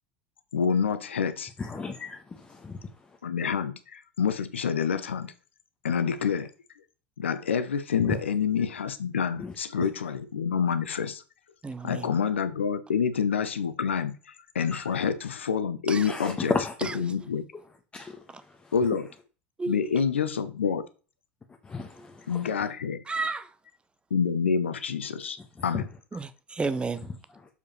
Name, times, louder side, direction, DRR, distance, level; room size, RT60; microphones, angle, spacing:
voice 1, 0.5-1.5 3.2-5.3 5.8-6.5 7.2-11.2 11.8-16.5 16.9-17.4 18.7-19.1 19.7-20.8 22.3-23.0 24.1-25.4 25.6-25.9, left 6 dB, 80° left, 0.8 m, -27 dB
voice 2, 1.6-2.8 8.0-8.2 9.4-9.5 14.7-14.8 16.1-16.7 17.9-18.2 21.6-22.4 25.7-25.8, left 4 dB, 20° left, 1.2 m, -33 dB
voice 3, 11.6-12.1 15.9-16.1 16.8-17.0 18.3-18.4 19.6-20.0 22.0-22.1 23.1-23.5 26.1-27.1, right 3 dB, 15° right, 0.8 m, -32 dB
7.0 x 4.9 x 4.2 m
figure-of-eight pair, 80°, 6 cm